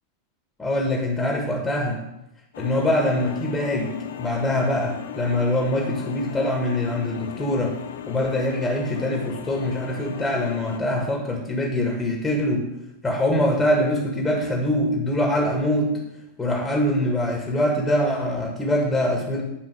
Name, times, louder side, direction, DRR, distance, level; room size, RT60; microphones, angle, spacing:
voice 1, 0.6-2.0 2.6-7.7 8.1-12.6 13.0-15.9 16.4-19.4, left 1 dB, 10° left, 0 dB, 1.9 m, -23 dB
sound 1, 2.5-10.8, left 9 dB, 60° left, 0.7 m, -37 dB
10.0 x 4.9 x 4.9 m, 0.89 s
figure-of-eight pair, 90°, 0 cm